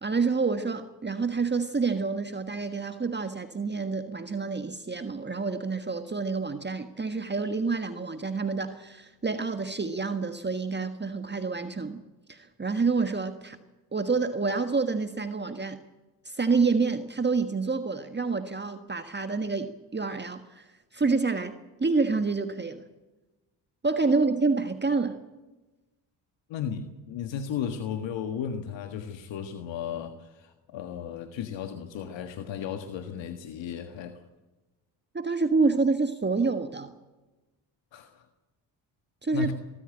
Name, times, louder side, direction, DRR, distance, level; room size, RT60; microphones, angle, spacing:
voice 1, 0.0-12.0 12.3-13.6 13.9-15.8 16.2-20.7 20.9-21.5 21.8-22.8 23.8-25.2 35.1-36.9 39.2-39.5, right 4 dB, 25° right, 8 dB, 1.6 m, -28 dB
voice 2, 26.5-34.2 37.9-38.2 39.3-39.5, left 7 dB, 75° left, 7 dB, 1.7 m, -35 dB
23.0 x 14.0 x 9.0 m, 1.1 s
supercardioid pair, 60°, 45 cm